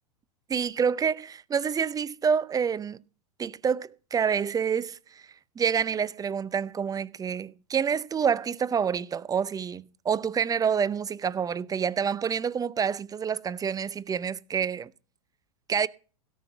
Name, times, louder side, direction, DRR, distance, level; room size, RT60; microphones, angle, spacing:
voice 1, 0.5-3.0 3.4-5.0 5.6-14.9 15.7-15.9, right 7 dB, 20° right, 0.6 m, -27 dB
17.0 x 5.9 x 6.9 m
hypercardioid pair, 100°, 19 cm